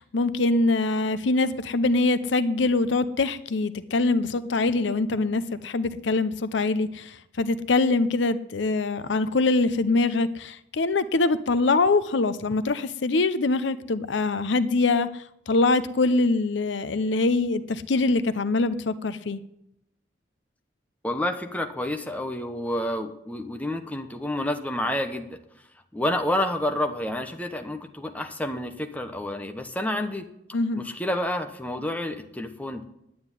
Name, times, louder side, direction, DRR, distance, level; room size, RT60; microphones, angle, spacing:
voice 1, 0.0-19.4 30.5-30.8, left 3 dB, 70° left, 14 dB, 0.6 m, -24 dB
voice 2, 21.0-25.4 25.9-30.3 30.8-32.8, left 1 dB, 10° left, 5 dB, 1.0 m, -29 dB
9.5 x 9.4 x 9.8 m, 0.81 s
head